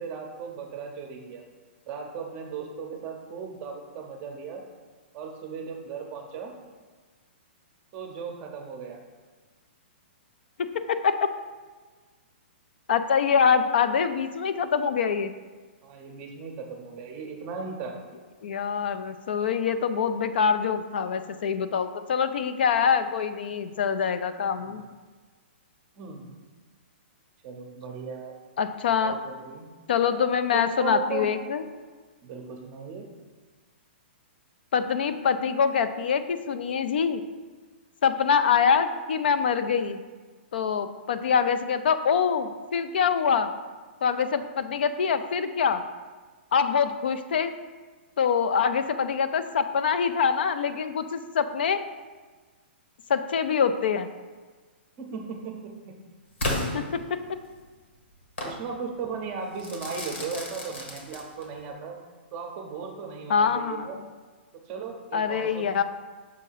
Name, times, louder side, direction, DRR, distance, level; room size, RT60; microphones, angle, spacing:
voice 1, 0.0-1.4 1.9-4.6 5.1-6.5 7.9-9.0 15.8-18.0 24.6-24.8 26.0-26.3 27.4-28.3 29.0-29.7 30.5-31.3 32.2-33.1 55.0-55.9 56.7-57.0 58.4-62.0 62.3-64.0 64.6-65.8, right 5 dB, 20° right, 3 dB, 0.6 m, -37 dB
voice 2, 10.6-11.3 12.9-15.3 18.4-24.8 28.6-29.2 29.9-31.6 34.7-37.2 38.0-40.0 40.5-43.5 44.0-45.8 46.5-47.6 48.2-51.8 53.1-54.1 56.7-57.2 63.3-63.9 65.1-65.8, left 6 dB, 60° left, 10 dB, 0.4 m, -25 dB
Crackle / Fireworks, 56.4-57.6 58.4-58.6 59.6-61.6, left 2 dB, 80° left, 1.6 m, -33 dB
6.3 x 2.7 x 5.6 m, 1.4 s
hypercardioid pair, 170°, 6 cm